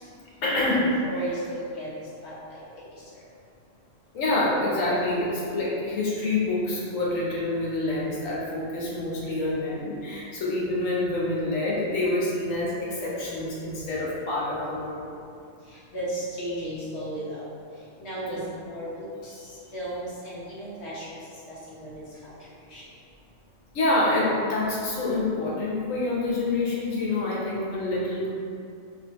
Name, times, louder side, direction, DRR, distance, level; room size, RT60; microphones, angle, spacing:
voice 1, 0.1-0.9 4.1-15.1 18.3-18.4 23.7-28.3, left 2 dB, 85° left, -5 dB, 1.2 m, -27 dB
voice 2, 1.1-1.9 2.2-2.6 15.9-17.4 18.0-18.4 18.7-19.3 19.7-21.2 21.7-22.0 22.7-22.8, right 1 dB, 60° left, -9 dB, 1.3 m, -34 dB
3.8 x 2.8 x 3.0 m, 2.5 s
omnidirectional pair, 1.3 m